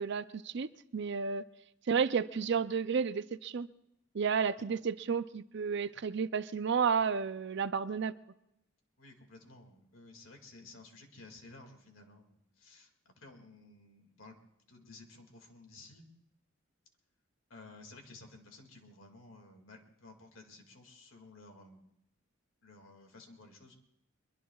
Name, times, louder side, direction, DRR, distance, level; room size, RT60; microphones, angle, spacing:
voice 1, 0.0-1.4 1.9-3.7 4.1-8.1, right 6 dB, 60° right, 14 dB, 0.5 m, -32 dB
voice 2, 9.0-14.4 14.7-16.1 17.5-21.9 22.6-23.8, left 2 dB, 80° left, 4 dB, 2.2 m, -54 dB
23.0 x 22.5 x 2.4 m, 0.84 s
head